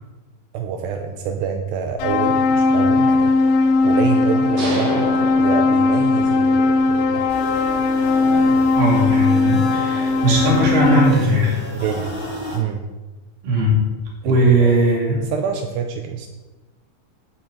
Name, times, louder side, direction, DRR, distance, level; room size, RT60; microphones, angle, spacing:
voice 1, 0.5-3.3 3.8-7.3 8.3-8.7 11.7-12.1 12.5-12.8 14.2-14.7 15.3-16.3, right 7 dB, 80° right, 5 dB, 2.6 m, -26 dB
sound 1, 2.0-11.1, left 3 dB, 80° left, 3.3 m, -18 dB
sound 2, 4.6-6.4, right 1 dB, 40° right, 3.4 m, -28 dB
sound 3, 7.3-12.6, left 1 dB, 20° right, 2.9 m, -33 dB
voice 2, 8.8-11.6 13.4-13.8 14.2-15.2, right 1 dB, 60° right, -2 dB, 4.5 m, -18 dB
10.0 x 6.1 x 7.6 m, 1.2 s
omnidirectional pair, 5.4 m